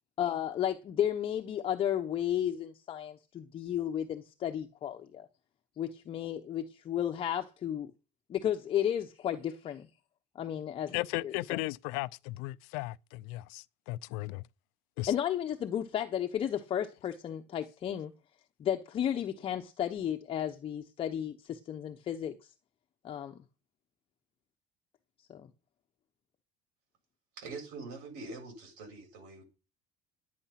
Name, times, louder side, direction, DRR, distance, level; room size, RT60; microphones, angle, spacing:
voice 1, 0.2-5.3 5.8-7.9 8.3-9.9 10.3-10.9 11.2-11.6 15.1-18.1 18.6-22.3 23.0-23.4 25.3-25.5, left 10 dB, 35° left, 1.0 m, -33 dB
voice 2, 10.9-14.4 15.0-15.1, left 20 dB, 85° left, 0.5 m, -36 dB
voice 3, 27.4-29.4, right 3 dB, 85° right, 8.0 m, -44 dB
11.5 x 9.4 x 5.9 m
cardioid pair, 145°, 16 cm